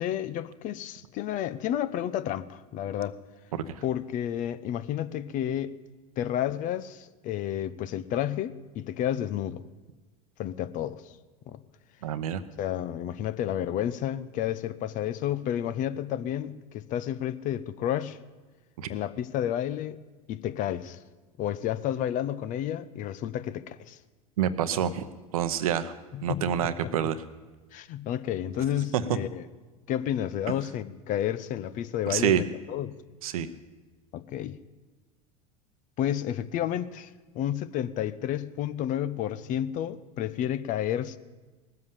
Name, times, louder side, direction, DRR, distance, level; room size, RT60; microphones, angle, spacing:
voice 1, 0.0-3.1 3.8-5.8 6.2-9.6 10.4-11.0 11.5-11.6 12.6-18.2 18.9-20.0 20.3-21.0 21.4-24.0 26.1-26.9 27.7-29.4 29.9-33.0 34.1-34.6 36.0-37.1 37.3-41.2, left 11 dB, 45° left, 15 dB, 0.7 m, -31 dB
voice 2, 3.5-3.8 12.0-12.4 18.8-18.9 24.4-25.1 25.3-25.9 26.2-27.2 28.9-29.1 32.1-32.4 33.2-33.5, right 9 dB, 75° right, 12 dB, 0.8 m, -27 dB
18.5 x 7.8 x 7.2 m, 1.2 s
hypercardioid pair, 85°, 18 cm